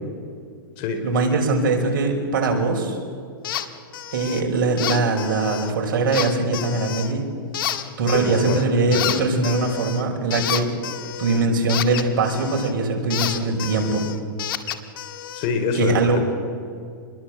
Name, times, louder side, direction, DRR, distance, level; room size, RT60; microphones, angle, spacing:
voice 1, 1.0-3.0 4.1-7.3 8.0-10.7 11.2-14.1 15.7-16.2, right 3 dB, 65° right, 3 dB, 6.0 m, -21 dB
sound 1, 3.4-3.7 3.9-4.4 4.8-5.7 6.1-7.1 7.5-8.7 8.9-12.7 13.1-15.5, left 11 dB, 70° left, 2.0 m, -30 dB
voice 2, 8.1-8.6 8.9-9.2 15.3-16.3, left 5 dB, 45° left, 7 dB, 5.0 m, -25 dB
28.0 x 21.5 x 7.8 m, 2.2 s
hypercardioid pair, 125°, 12 cm